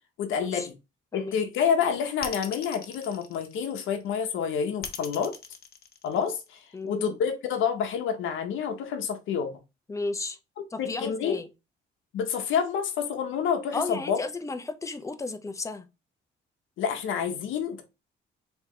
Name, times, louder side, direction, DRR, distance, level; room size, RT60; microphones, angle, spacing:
voice 1, 0.2-0.7 1.1-5.3 6.0-9.5 10.8-11.4 12.1-14.2 16.8-17.8, left 7 dB, 85° left, 0.8 m, -28 dB
sound 1, 2.2-4.0 4.8-6.6, left 7 dB, 50° left, 0.8 m, -39 dB
voice 2, 6.7-7.2 9.9-10.4 10.7-11.5 13.7-15.9, left 3 dB, 15° left, 0.6 m, -33 dB
3.5 x 2.9 x 3.5 m
cardioid pair, 90°, 20 cm